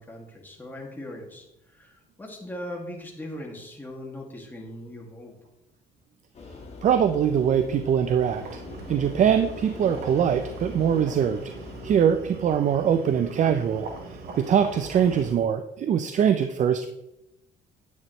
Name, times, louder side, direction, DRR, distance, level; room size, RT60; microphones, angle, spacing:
voice 1, 0.0-5.4 13.4-13.6, left 1 dB, 10° left, 0 dB, 2.3 m, -40 dB
sound 1, 6.3-12.0, left 3 dB, 40° left, 1.8 m, -41 dB
voice 2, 6.8-8.4 8.9-11.5 11.8-13.9 14.4-16.9, right 8 dB, 45° right, 9 dB, 0.6 m, -22 dB
sound 2, 8.2-15.4, right 3 dB, 70° right, 1.7 m, -41 dB
9.5 x 8.9 x 3.2 m, 0.86 s
cardioid pair, 110°, 17 cm